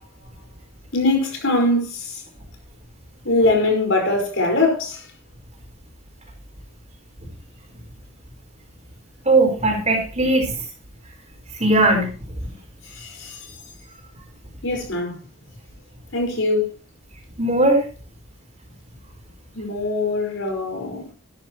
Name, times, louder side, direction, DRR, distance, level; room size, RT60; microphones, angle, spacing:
voice 1, 0.9-2.2 3.2-5.1 12.8-13.6 14.6-15.2 16.1-16.7 19.5-21.1, left 2 dB, 70° left, 5.3 m, -22 dB
voice 2, 9.2-10.6 11.5-12.1 12.4-12.5 17.4-17.8, right 2 dB, 35° right, 4.6 m, -18 dB
12.5 x 12.5 x 3.1 m
head